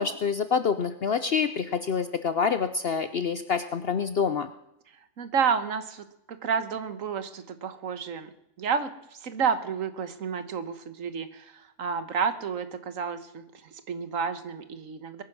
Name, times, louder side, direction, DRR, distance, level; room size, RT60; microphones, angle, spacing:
voice 1, 0.0-4.5, left 6 dB, 55° left, 11 dB, 0.8 m, -27 dB
voice 2, 5.2-8.3 8.6-8.9 9.2-15.2, right 6 dB, 70° right, 11 dB, 1.6 m, -30 dB
22.0 x 9.8 x 6.0 m, 0.80 s
omnidirectional pair, 1.4 m